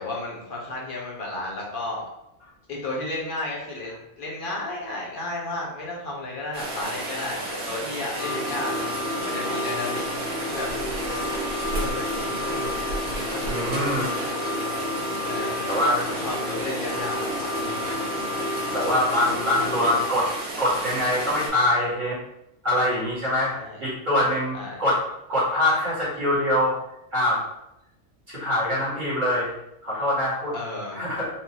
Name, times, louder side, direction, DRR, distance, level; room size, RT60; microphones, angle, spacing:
voice 1, 0.0-2.0 2.7-8.8 9.2-10.0 10.4-10.7 11.7-12.8 13.0-13.9 15.3-17.9 23.5-23.8 24.5-24.8 30.5-31.0, left 2 dB, 45° left, -4 dB, 1.1 m, -33 dB
Rain, 6.5-21.5, right 2 dB, 90° right, 1.5 m, -33 dB
sound 1, 8.2-20.1, left 2 dB, 60° left, 1.4 m, -31 dB
voice 2, 13.5-14.0 14.4-14.6 15.7-16.0 18.7-20.3 20.6-22.2 22.6-23.5 23.8-25.0 25.3-26.7 27.1-27.4 28.3-29.5 29.8-30.5 30.9-31.3, left 1 dB, 35° right, -8 dB, 1.7 m, -24 dB
4.6 x 2.8 x 2.9 m, 0.86 s
omnidirectional pair, 1.4 m